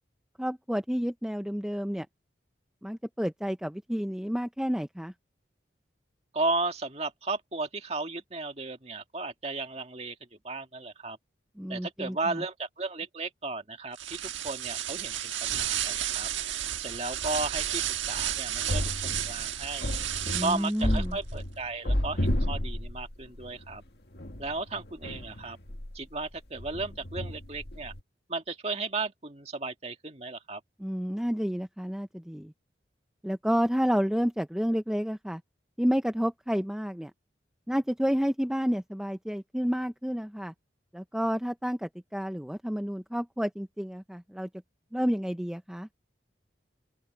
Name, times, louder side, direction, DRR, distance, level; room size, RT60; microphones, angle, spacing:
voice 1, 0.4-2.1 2.8-5.1 11.6-12.4 20.3-21.2 30.8-32.5 33.2-35.4 35.8-37.1 37.7-40.5 40.9-44.5 44.9-45.9, equal, 5° right, 0.5 m, -30 dB
voice 2, 6.3-10.2 10.4-11.2 11.7-14.2 14.4-16.3 16.8-19.9 20.4-23.8 24.4-25.6 25.9-27.9 28.3-30.6, right 3 dB, 35° right, 2.0 m, -34 dB
sound 1, 13.9-20.8, right 11 dB, 90° right, 1.5 m, -32 dB
sound 2, 18.2-19.4 19.8-23.8 24.1-26.3 26.6-28.0, left 1 dB, 60° left, 1.9 m, -32 dB
open air
head